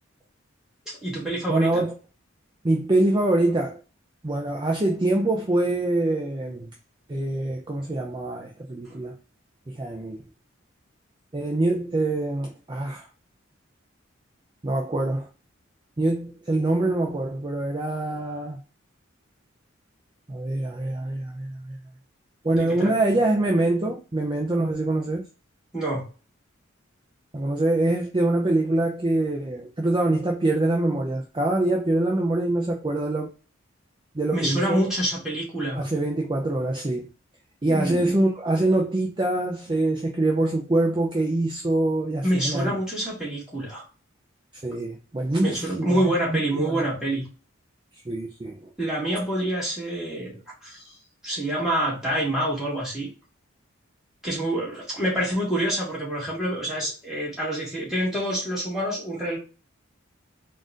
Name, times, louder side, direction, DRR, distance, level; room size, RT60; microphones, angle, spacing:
voice 1, 0.9-1.8 22.5-22.9 25.7-26.0 34.3-35.8 37.7-38.1 42.2-43.9 45.4-47.2 48.8-50.8 51.2-53.1 54.2-59.4, right 1 dB, ahead, 2.0 m, -27 dB
voice 2, 1.5-1.9 2.6-3.8 4.2-6.7 7.1-9.1 9.7-10.2 11.3-13.1 14.6-15.3 16.0-18.6 20.3-21.8 22.4-25.2 27.3-33.3 34.1-34.8 35.7-37.1 37.6-42.8 44.5-46.8 48.1-48.7, right 2 dB, 25° right, 0.5 m, -24 dB
3.9 x 2.5 x 3.6 m
head